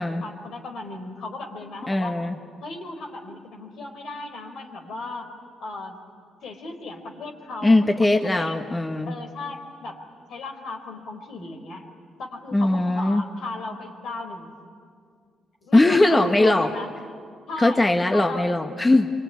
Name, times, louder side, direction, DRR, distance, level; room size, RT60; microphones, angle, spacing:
voice 1, 0.2-2.2 2.6-5.3 5.6-6.0 6.4-8.7 9.1-10.0 10.3-11.8 12.2-14.5 15.6-16.9 17.5-17.8 18.1-18.5, left 3 dB, 70° left, 4 dB, 4.2 m, -36 dB
voice 2, 1.9-2.4 7.6-9.1 12.5-13.2 15.7-16.7 17.6-19.1, left 2 dB, 15° left, 5 dB, 1.3 m, -20 dB
25.5 x 24.0 x 9.7 m, 2.2 s
cardioid pair, 90°, 0 cm